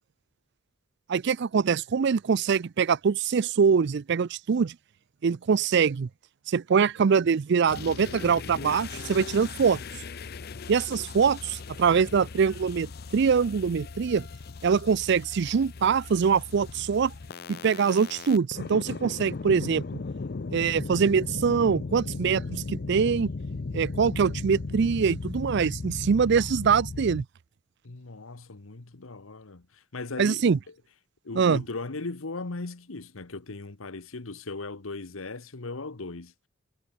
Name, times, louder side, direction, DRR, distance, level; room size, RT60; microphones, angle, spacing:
voice 1, 1.1-4.8 5.2-6.1 6.5-9.8 10.7-14.3 14.6-17.1 17.5-19.8 20.5-23.3 23.7-27.2 30.2-30.6 31.4-31.6, right 6 dB, 55° right, 0.4 m, -24 dB
sound 1, 7.7-27.2, left 3 dB, 50° left, 0.6 m, -37 dB
voice 2, 27.8-30.7 31.2-36.3, left 3 dB, 90° left, 1.2 m, -38 dB
head